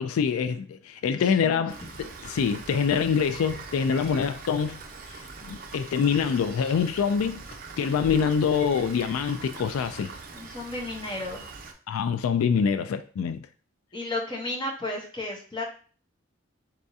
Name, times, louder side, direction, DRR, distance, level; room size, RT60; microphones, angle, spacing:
voice 1, 0.0-4.8 5.1-7.4 7.8-10.2 11.9-13.5, left 6 dB, 90° left, 0.3 m, -25 dB
voice 2, 1.4-1.9 10.3-11.5 13.9-15.6, left 2 dB, 20° left, 0.9 m, -33 dB
Rain, 1.7-11.7, right 4 dB, 40° right, 0.5 m, -42 dB
4.1 x 3.5 x 2.7 m
head